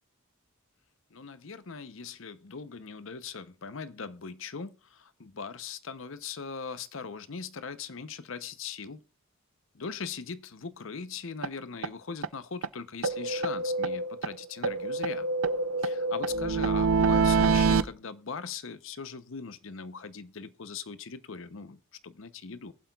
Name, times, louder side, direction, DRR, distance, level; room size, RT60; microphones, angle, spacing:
voice 1, 1.1-9.0 9.7-15.3 15.8-22.7, left 5 dB, 65° left, 0.7 m, -40 dB
sound 1, 11.4-11.5 11.8-11.9 12.2-12.3 12.6-12.7 13.0-14.3 14.6-17.8, right 4 dB, 70° right, 0.5 m, -26 dB
22.5 x 7.8 x 2.3 m
head